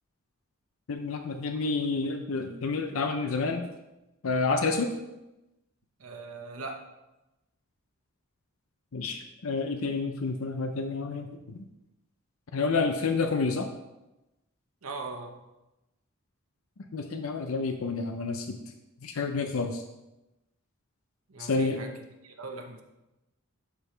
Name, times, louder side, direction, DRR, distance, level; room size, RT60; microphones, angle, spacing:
voice 1, 0.9-3.7 4.2-4.9 8.9-11.6 12.5-13.7 16.9-18.6 19.0-19.8 21.4-21.8, left 4 dB, 80° left, 6 dB, 0.6 m, -29 dB
voice 2, 6.0-6.9 14.8-15.4 21.3-22.0 22.2-22.8, right 3 dB, 85° right, 4 dB, 1.0 m, -40 dB
11.5 x 4.9 x 3.3 m, 0.98 s
head